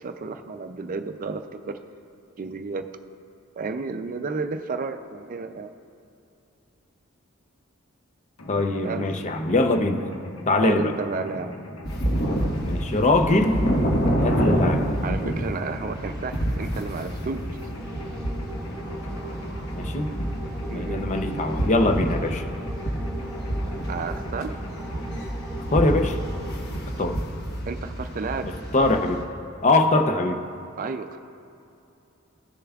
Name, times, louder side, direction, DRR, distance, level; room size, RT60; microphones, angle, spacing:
voice 1, 0.0-1.8 2.4-2.9 3.6-5.7 8.8-9.1 10.6-11.5 15.0-17.5 20.6-21.1 23.9-24.5 27.7-28.5 30.8-31.2, right 4 dB, 40° right, 8 dB, 0.4 m, -32 dB
Mechanisms, 8.4-25.2, equal, 85° left, 1.1 m, -41 dB
voice 2, 8.5-10.0 10.5-10.9 12.7-13.6 14.2-15.0 19.7-20.1 20.7-22.4 25.7-26.2 27.0-27.2 28.7-29.2 29.6-30.4, left 2 dB, 35° left, 6 dB, 0.6 m, -22 dB
sound 1, 11.8-29.2, equal, 50° left, 1.3 m, -28 dB
sound 2, 17.2-26.5, right 1 dB, 5° right, 1.3 m, -40 dB
16.5 x 6.8 x 2.4 m, 2.7 s
head